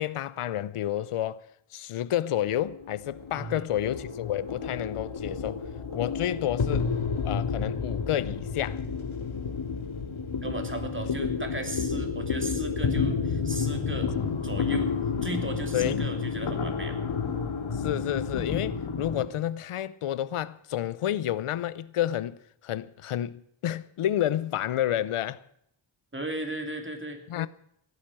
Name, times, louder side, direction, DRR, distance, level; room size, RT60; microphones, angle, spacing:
voice 1, 0.0-1.5 1.7-5.6 5.9-6.8 7.2-8.8 15.7-16.0 17.7-22.4 22.6-25.4 27.3-27.5, left 12 dB, 85° left, 0.7 m, -30 dB
sound 1, 2.4-19.3, left 5 dB, 70° left, 2.0 m, -30 dB
voice 2, 10.4-14.1 14.4-14.9 15.2-17.0 26.1-27.2, right 2 dB, 25° right, 3.1 m, -36 dB
16.5 x 10.0 x 7.5 m
cardioid pair, 55°, 50 cm